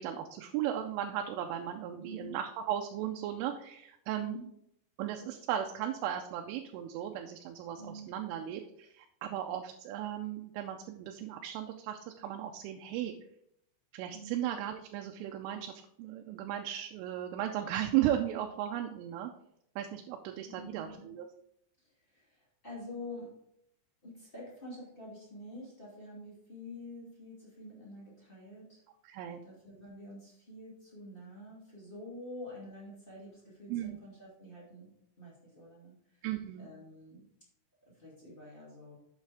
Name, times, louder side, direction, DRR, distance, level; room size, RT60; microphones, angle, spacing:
voice 1, 0.0-4.4 5.0-13.1 13.9-19.3 19.8-21.3 29.0-29.4 33.7-34.0 36.2-36.7, right 11 dB, 90° right, 3 dB, 3.2 m, -36 dB
voice 2, 2.0-2.3 4.2-4.5 7.8-8.1 14.1-14.4 20.4-21.1 21.8-23.3 24.0-28.8 29.4-34.9 35.2-36.2 36.6-37.2 37.8-39.0, left 1 dB, 25° left, -6 dB, 1.2 m, -47 dB
9.0 x 7.3 x 3.5 m, 0.74 s
omnidirectional pair, 5.5 m